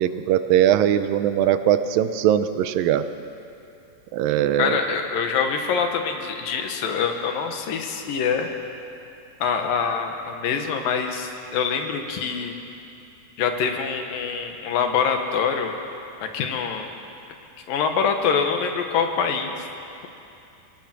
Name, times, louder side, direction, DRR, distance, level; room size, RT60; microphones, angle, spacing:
voice 1, 0.0-3.0 4.1-4.8, right 10 dB, 90° right, 11 dB, 2.5 m, -20 dB
voice 2, 4.6-8.5 9.4-12.6 13.4-15.8 16.2-17.0 17.7-19.7, left 6 dB, 90° left, 5 dB, 3.1 m, -25 dB
23.5 x 19.0 x 6.1 m, 2.7 s
omnidirectional pair, 3.9 m